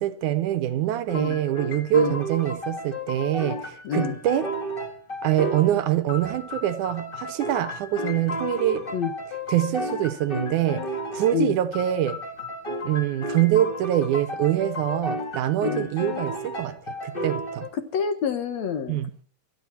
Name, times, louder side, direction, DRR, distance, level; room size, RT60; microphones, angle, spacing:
voice 1, 0.0-4.5 5.2-8.9 9.5-12.2 12.8-16.8 17.0-17.7 18.9-19.1, right 12 dB, 75° right, 2.2 m, -24 dB
sound 1, 1.1-5.8 6.1-11.5 11.7-17.7, left 1 dB, 25° left, 1.3 m, -33 dB
voice 2, 17.7-19.0, left 7 dB, 65° left, 2.1 m, -27 dB
25.0 x 10.5 x 4.4 m
omnidirectional pair, 3.9 m